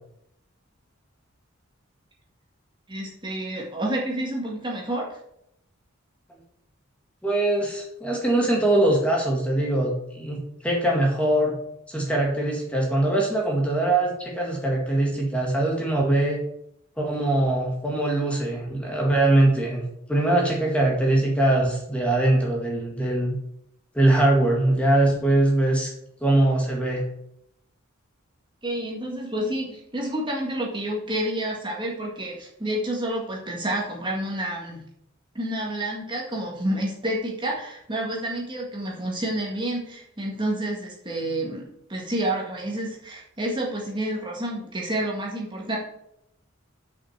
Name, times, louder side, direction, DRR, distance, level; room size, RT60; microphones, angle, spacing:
voice 1, 2.9-5.2 28.6-34.8 35.4-45.8, right 1 dB, 25° right, -2 dB, 1.7 m, -29 dB
voice 2, 7.2-11.5 11.9-16.4 17.0-19.8 20.1-23.4 23.9-25.9 26.2-27.0, right 1 dB, 5° left, -1 dB, 1.9 m, -22 dB
6.8 x 5.9 x 7.2 m, 0.75 s
head